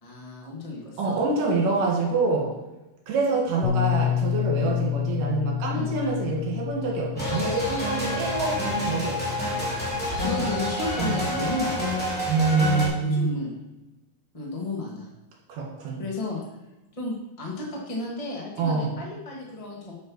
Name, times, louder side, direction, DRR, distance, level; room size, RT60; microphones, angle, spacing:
voice 1, 0.0-1.2 4.6-4.8 5.7-6.0 10.2-12.0 13.0-13.6 14.3-15.1 16.0-16.4 16.9-19.9, left 2 dB, 35° left, -3 dB, 0.5 m, -33 dB
voice 2, 1.0-2.5 3.1-9.4 11.0-11.1 12.3-13.3 15.5-16.0 18.6-18.9, right 3 dB, 70° right, -1 dB, 3.4 m, -26 dB
Bass guitar, 3.6-9.9, left 11 dB, 75° left, 2.3 m, -29 dB
sound 1, 7.2-12.9, left 1 dB, 5° left, 2.2 m, -28 dB
7.6 x 6.7 x 6.2 m, 1.0 s
omnidirectional pair, 4.2 m